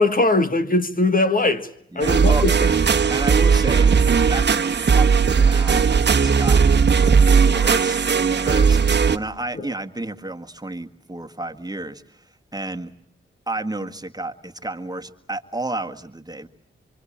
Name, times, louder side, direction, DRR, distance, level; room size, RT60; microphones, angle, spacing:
voice 1, 0.0-1.7 1.9-2.5, left 2 dB, 40° left, 1.6 m, -20 dB
voice 2, 1.9-2.5 3.1-4.6 4.9-6.9 7.4-8.8 9.1-12.2 12.5-12.9 13.5-16.5, right 2 dB, 20° right, 1.8 m, -31 dB
sound 1, 2.0-9.2, right 6 dB, 55° right, 1.3 m, -17 dB
26.5 x 24.5 x 8.7 m
cardioid pair, 60°, 21 cm